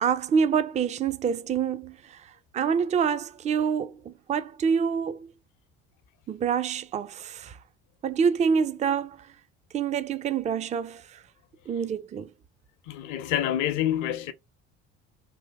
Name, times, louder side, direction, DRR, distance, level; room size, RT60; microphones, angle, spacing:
voice 1, 0.0-5.3 6.3-7.6 8.0-9.3 9.7-11.2 11.7-12.3, right 6 dB, 20° right, 0.4 m, -27 dB
voice 2, 12.9-14.3, left 11 dB, 55° left, 0.8 m, -27 dB
3.5 x 2.7 x 3.4 m
figure-of-eight pair, 60°, 35 cm